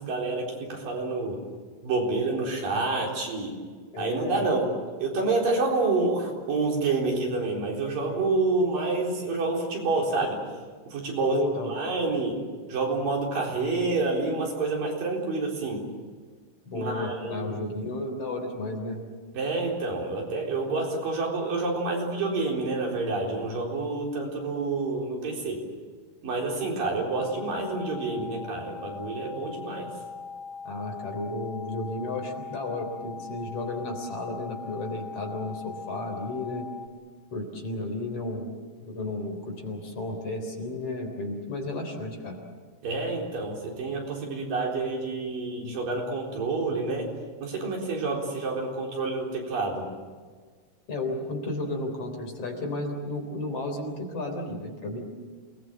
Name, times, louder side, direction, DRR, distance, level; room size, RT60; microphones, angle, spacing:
voice 1, 0.0-1.4 1.8-3.5 4.0-10.4 10.9-11.4 11.6-12.4 12.7-15.9 16.7-17.6 19.4-25.6 26.2-29.9 42.8-47.1 47.4-49.9, right 3 dB, 80° right, -1 dB, 5.8 m, -28 dB
voice 2, 3.9-4.4 11.2-11.7 16.7-19.0 30.6-36.7 37.3-38.5 38.8-42.4 50.9-55.0, left 2 dB, 45° left, 3 dB, 4.6 m, -33 dB
sound 1, 26.9-36.9, left 5 dB, 65° left, 1.3 m, -40 dB
28.5 x 20.5 x 7.6 m, 1.5 s
omnidirectional pair, 3.9 m